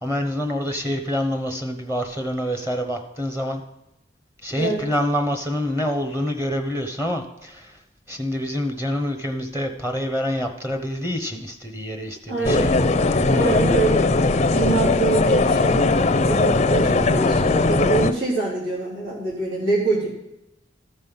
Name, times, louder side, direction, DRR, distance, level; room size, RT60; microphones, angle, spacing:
voice 1, 0.0-3.6 4.4-7.7 8.1-12.8, equal, 15° right, 3 dB, 1.0 m, -26 dB
voice 2, 4.5-4.8 12.3-12.8 13.3-14.1 14.5-15.9 16.2-20.1, right 3 dB, 80° right, -7 dB, 3.4 m, -25 dB
sound 1, 12.4-18.1, left 3 dB, 35° left, 0.5 m, -19 dB
14.0 x 5.4 x 5.5 m, 0.91 s
head